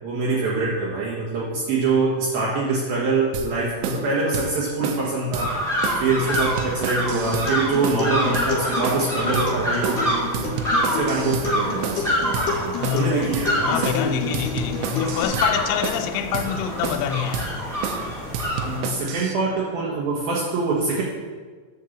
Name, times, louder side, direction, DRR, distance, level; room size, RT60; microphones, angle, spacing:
voice 1, 0.0-5.5 6.0-10.5 10.9-14.3 18.6-21.0, right 3 dB, 65° right, 2.7 m, -24 dB
sound 1, 3.3-3.5 3.8-4.1 4.3-4.5 4.8-5.1 5.3-5.5 5.8-6.1 6.3-7.5 7.8-8.1 8.3-8.5 8.8-9.1 9.3-9.5 9.8-10.1 10.3-11.5 11.8-12.1 12.3-12.5 12.8-13.1 13.3-13.5 13.8-14.1 14.3-15.5 15.8-16.1 16.3-16.5 16.8-17.1 17.3-17.5 17.8-18.1 18.3-19.3, right 6 dB, 85° right, 3.2 m, -30 dB
sound 2, 5.4-18.8, equal, 20° right, 1.4 m, -27 dB
Acoustic guitar, 7.3-15.2, left 6 dB, 50° left, 2.7 m, -31 dB
voice 2, 12.8-18.6, left 9 dB, 80° left, 2.8 m, -27 dB
10.5 x 4.5 x 7.1 m
omnidirectional pair, 5.4 m